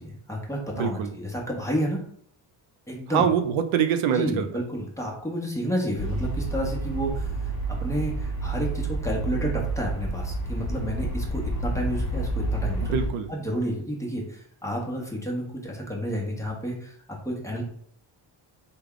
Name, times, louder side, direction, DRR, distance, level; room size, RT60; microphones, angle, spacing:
voice 1, 0.0-2.0 2.9-3.3 4.1-7.3 7.7-12.9 13.3-16.9 17.2-17.6, equal, 5° left, -2 dB, 0.8 m, -30 dB
voice 2, 0.7-1.1 3.1-4.5 12.8-13.3, right 8 dB, 85° right, 9 dB, 0.5 m, -24 dB
sound 1, 6.0-13.1, right 2 dB, 35° left, 1.0 m, -29 dB
3.4 x 2.2 x 3.6 m, 0.63 s
cardioid pair, 105°, 47 cm